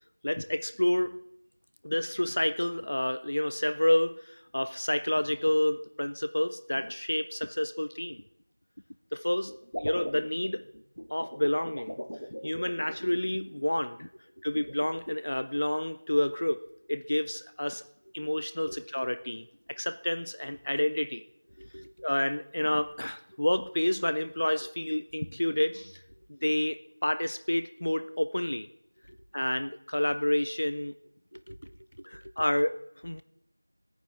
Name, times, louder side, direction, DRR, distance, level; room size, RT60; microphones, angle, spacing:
voice 1, 0.2-1.2 1.8-8.2 9.1-10.7 11.1-12.0 12.4-14.1 14.4-17.8 18.1-21.2 22.0-26.0 26.3-28.7 29.3-30.9 32.1-33.2, left 1 dB, 15° left, 10 dB, 0.4 m, -29 dB
sound 1, 9.5-13.6 14.5-15.2, equal, 85° left, 1.5 m, -40 dB
voice 2, 21.5-22.1 26.2-26.3 29.1-29.2 31.3-32.5, equal, 85° right, 13 dB, 1.1 m, -48 dB
21.0 x 9.2 x 3.6 m, 0.75 s
figure-of-eight pair, 180°, 0 cm